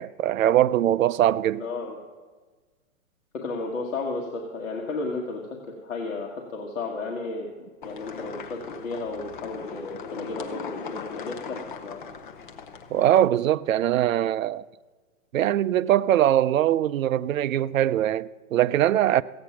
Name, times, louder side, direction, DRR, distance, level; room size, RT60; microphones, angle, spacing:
voice 1, 0.0-1.7 12.9-14.6 15.3-19.2, right 12 dB, 75° right, 0.5 m, -22 dB
voice 2, 1.6-1.9 3.3-5.4 5.7-12.0, left 3 dB, 65° left, 1.7 m, -33 dB
sound 1, 7.8-13.3, left 5 dB, 40° left, 0.8 m, -39 dB
15.0 x 8.6 x 5.8 m
hypercardioid pair, 170°, 41 cm